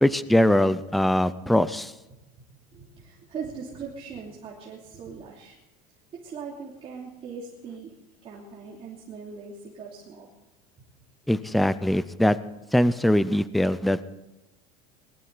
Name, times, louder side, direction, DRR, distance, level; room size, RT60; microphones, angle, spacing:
voice 1, 0.0-1.9 11.3-12.4 12.7-14.2, left 1 dB, ahead, 16 dB, 0.4 m, -22 dB
voice 2, 2.7-5.5 6.1-7.9 8.2-10.3, right 5 dB, 30° right, -4 dB, 2.9 m, -40 dB
20.5 x 13.5 x 4.0 m, 1.0 s
supercardioid pair, 145°, 18 cm